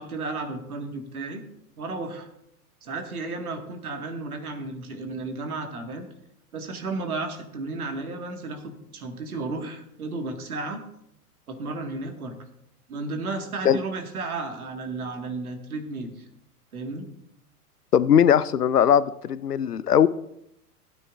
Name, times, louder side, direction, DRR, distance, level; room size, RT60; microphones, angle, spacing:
voice 1, 0.0-1.4 1.8-2.3 2.8-6.1 6.5-10.8 11.5-12.4 12.9-16.2 16.7-17.1, right 3 dB, 70° right, 5 dB, 1.9 m, -33 dB
voice 2, 17.9-20.1, left 9 dB, 80° left, 18 dB, 0.6 m, -19 dB
16.5 x 9.0 x 2.5 m, 0.79 s
figure-of-eight pair, 100°, 46 cm